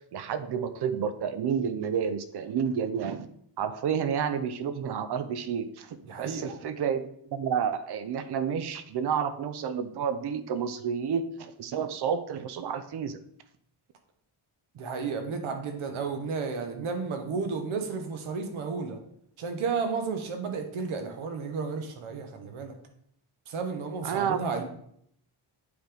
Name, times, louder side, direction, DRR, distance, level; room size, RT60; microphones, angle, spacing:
voice 1, 0.1-3.3 3.6-7.0 7.3-13.2 24.0-24.4, right 7 dB, 55° right, 11 dB, 0.6 m, -30 dB
voice 2, 6.0-6.5 14.7-19.0 19.4-22.7 23.5-24.6, right 5 dB, 75° right, 5 dB, 1.1 m, -32 dB
8.6 x 3.8 x 3.4 m, 0.69 s
wide cardioid pair, 155°, 49 cm